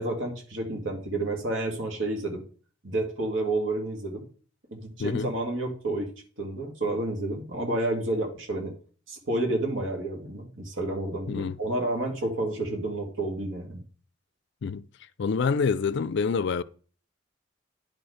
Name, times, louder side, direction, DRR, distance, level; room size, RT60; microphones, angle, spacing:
voice 1, 0.0-2.4 2.8-4.2 4.7-6.1 6.4-8.7 9.1-13.8, right 2 dB, 70° right, 2.2 m, -30 dB
voice 2, 5.0-5.3 11.3-11.5 14.6-14.9 15.2-16.6, left 5 dB, 60° left, 0.4 m, -26 dB
10.5 x 4.5 x 4.9 m
head